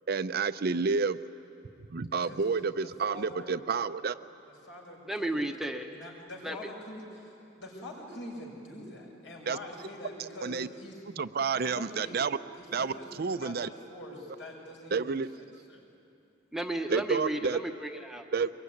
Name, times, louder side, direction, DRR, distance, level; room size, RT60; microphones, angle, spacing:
voice 1, 0.1-1.2 1.9-4.1 9.5-9.6 10.4-10.7 11.2-12.4 12.7-12.9 13.2-13.7 14.9-15.3 16.9-17.6 18.3-18.5, right 5 dB, 55° right, 12 dB, 0.6 m, -29 dB
voice 2, 2.1-2.5 2.8-3.7 4.4-5.5 5.8-11.0 11.5-12.2 12.5-15.8, left 1 dB, 70° left, -1 dB, 6.6 m, -45 dB
voice 3, 5.1-5.9 6.4-6.6 16.5-18.3, right 1 dB, ahead, 3 dB, 0.9 m, -33 dB
23.5 x 22.0 x 9.7 m, 2.7 s
head